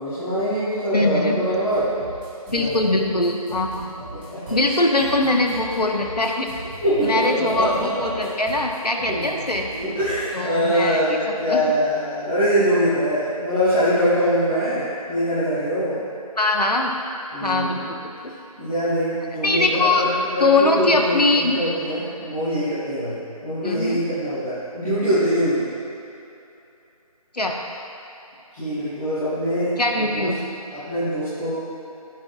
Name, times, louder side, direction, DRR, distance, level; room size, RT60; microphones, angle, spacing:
voice 1, 0.0-1.9 2.5-3.0 4.1-4.9 6.8-8.3 9.0-9.2 9.8-16.0 17.3-17.9 18.6-25.7 28.5-30.3 30.7-31.5, equal, ahead, -20 dB, 0.5 m, -23 dB
voice 2, 0.9-1.4 2.5-3.9 4.5-6.5 7.0-9.7 10.3-11.0 11.5-11.6 16.4-16.9 17.4-18.3 19.4-20.0 20.4-21.6 23.6-24.0 27.3-27.6 29.8-30.5, left 2 dB, 90° left, 2 dB, 1.4 m, -22 dB
sound 1, 1.7-10.3, right 1 dB, 15° right, 2.3 m, -38 dB
14.0 x 10.0 x 2.5 m, 2.8 s
figure-of-eight pair, 165°, 20 cm